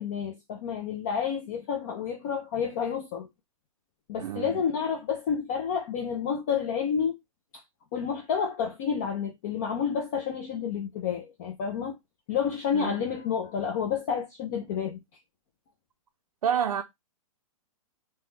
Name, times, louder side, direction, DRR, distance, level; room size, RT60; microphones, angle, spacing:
voice 1, 0.0-3.3 4.1-7.2 7.5-7.6 7.9-12.0 12.3-15.0, left 7 dB, 30° left, 0.4 m, -30 dB
voice 2, 4.2-4.6 12.7-13.0 16.4-16.8, right 8 dB, 85° right, 0.5 m, -29 dB
2.9 x 2.1 x 3.2 m
hypercardioid pair, 160°, 19 cm